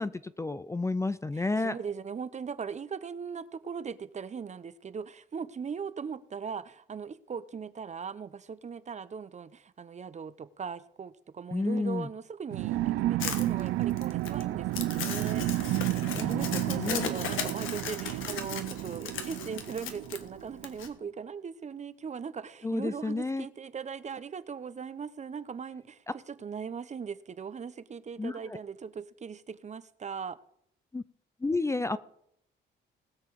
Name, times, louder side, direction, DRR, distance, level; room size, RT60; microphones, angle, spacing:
voice 1, 0.0-1.8 11.5-12.1 16.1-17.1 22.6-23.5 28.2-28.6 30.9-31.0 31.4-32.0, left 3 dB, 15° left, 0.5 m, -31 dB
voice 2, 1.3-30.4, right 6 dB, 35° right, 0.7 m, -39 dB
sound 1, 12.5-20.7, right 16 dB, 90° right, 0.5 m, -31 dB
Crumpling crinkling, 13.2-20.9, left 8 dB, 85° left, 1.4 m, -37 dB
19.5 x 6.7 x 4.8 m
cardioid pair, 90°, 20 cm